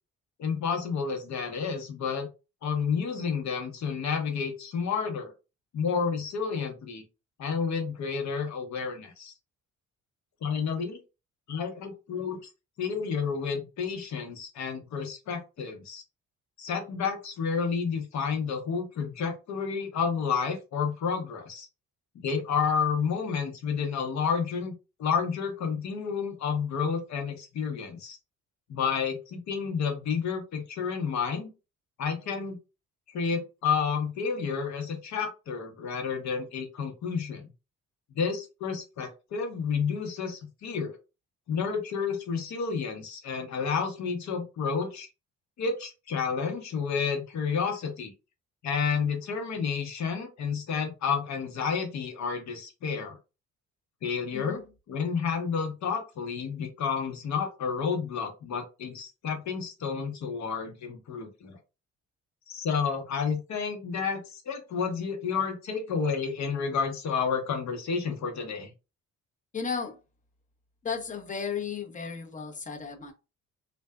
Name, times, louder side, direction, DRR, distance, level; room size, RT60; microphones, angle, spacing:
voice 1, 0.4-2.3 2.6-5.3 5.7-7.0 7.4-9.3 10.4-11.0 11.5-12.4 12.8-16.0 16.6-21.7 22.2-24.7 25.0-28.2 28.7-31.5 32.0-32.6 33.1-37.5 38.1-40.9 41.5-45.1 45.6-48.1 48.6-53.2 54.0-54.6 54.9-61.6 62.5-68.7, left 6 dB, 65° left, 0.9 m, -30 dB
voice 2, 69.5-70.0 70.8-73.1, left 6 dB, 25° left, 0.7 m, -34 dB
2.5 x 2.2 x 2.2 m
cardioid pair, 90°, 30 cm